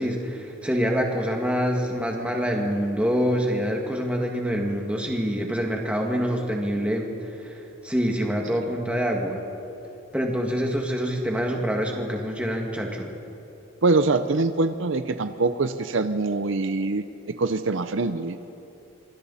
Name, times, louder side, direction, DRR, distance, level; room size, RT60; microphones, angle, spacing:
voice 1, 0.0-7.1 7.4-9.4 10.1-13.1, equal, 5° right, 0 dB, 2.1 m, -26 dB
voice 2, 13.8-18.4, right 3 dB, 65° right, 10 dB, 0.7 m, -24 dB
26.0 x 24.0 x 4.3 m, 2.9 s
head